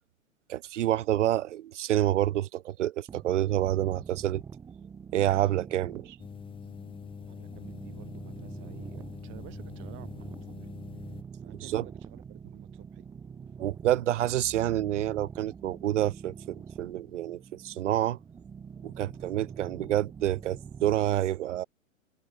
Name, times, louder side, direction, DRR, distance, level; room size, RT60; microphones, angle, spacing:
voice 1, 0.5-4.4 5.1-6.2 11.6-11.9 13.6-18.2 18.8-21.6, right 13 dB, 60° right, 0.6 m, -28 dB
sound 1, 3.1-21.0, right 6 dB, 10° right, 0.6 m, -45 dB
sound 2, 6.2-11.2, left 7 dB, 10° left, 1.5 m, -44 dB
voice 2, 7.3-10.7 11.4-13.1, right 19 dB, 30° right, 2.1 m, -51 dB
figure-of-eight pair, 110°, 41 cm